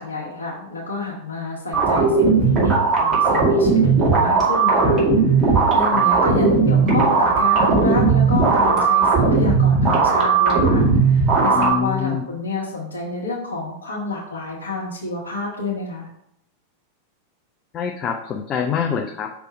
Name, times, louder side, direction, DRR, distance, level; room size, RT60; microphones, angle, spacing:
voice 1, 0.0-16.1, left 3 dB, 75° left, -6 dB, 1.3 m, -29 dB
sound 1, 1.7-11.7, right 4 dB, 25° right, 2.3 m, -17 dB
voice 2, 11.5-12.2 17.7-19.3, left 7 dB, 30° left, 3 dB, 0.5 m, -25 dB
6.0 x 3.4 x 5.9 m, 0.76 s
figure-of-eight pair, 90°, 0 cm